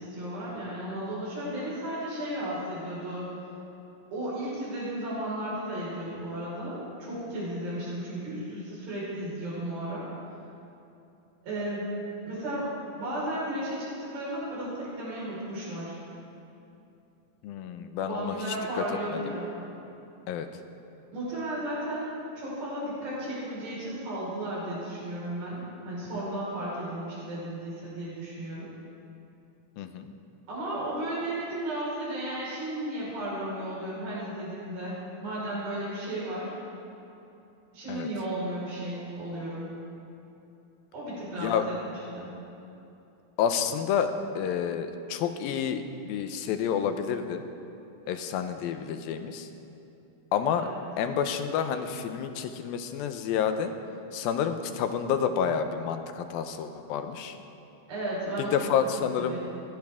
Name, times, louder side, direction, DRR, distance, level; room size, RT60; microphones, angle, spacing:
voice 1, 0.0-3.2 4.1-10.1 11.4-11.9 12.2-12.7 13.0-16.0 18.0-19.5 21.1-28.7 30.5-36.5 37.7-39.7 40.9-42.3 50.6-50.8 57.9-59.4, right 1 dB, 85° right, -9 dB, 6.7 m, -34 dB
voice 2, 17.4-18.4 18.8-18.9 19.1-19.2 20.3-20.5 29.8-30.1 37.9-38.1 41.4-41.6 43.4-47.4 48.1-49.5 50.3-50.7 51.0-53.7 54.1-57.4 58.5-59.4, left 8 dB, 85° left, 8 dB, 2.6 m, -29 dB
21.5 x 16.5 x 3.6 m, 2.8 s
omnidirectional pair, 4.1 m